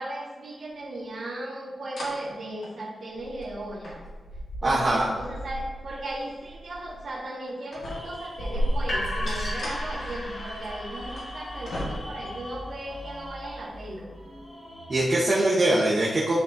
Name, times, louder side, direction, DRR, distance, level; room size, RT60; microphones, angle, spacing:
voice 1, 0.0-4.0 4.6-14.1, right 1 dB, 65° right, -7 dB, 1.6 m, -36 dB
sound 1, 1.0-1.1 1.9-2.1 2.6-7.1 7.5-8.3 9.3-10.5 11.1-11.3 11.7-12.4 13.3-13.4, equal, 70° left, 1.8 m, -39 dB
voice 2, 4.6-5.1 14.9-16.4, right 1 dB, 35° right, -7 dB, 1.2 m, -22 dB
sound 2, 7.8-14.9, left 1 dB, 30° left, 1.4 m, -43 dB
sound 3, 8.4-14.2, equal, 50° left, 1.4 m, -32 dB
10.0 x 4.2 x 2.7 m, 1.4 s
wide cardioid pair, 165°, 0 cm